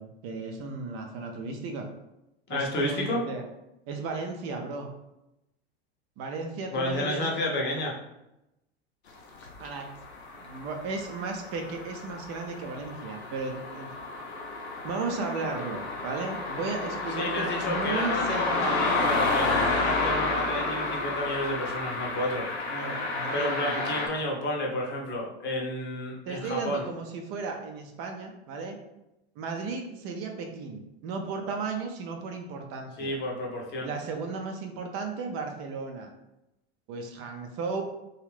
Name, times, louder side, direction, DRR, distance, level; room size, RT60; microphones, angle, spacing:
voice 1, 0.0-1.9 2.5-3.4 3.9-4.9 6.2-7.6 9.6-9.9 10.4-13.9 14.8-19.2 22.7-24.1 26.2-28.8 29.4-33.1 33.8-36.1 36.9-37.8, right 4 dB, 45° right, 3 dB, 0.5 m, -35 dB
voice 2, 2.5-3.2 6.7-7.9 17.2-22.5 23.3-26.8 33.0-33.9, left 1 dB, 35° left, -1 dB, 0.8 m, -31 dB
sound 1, 9.4-24.1, left 3 dB, 80° left, 0.7 m, -31 dB
2.5 x 2.3 x 3.2 m, 0.90 s
hypercardioid pair, 85°, 32 cm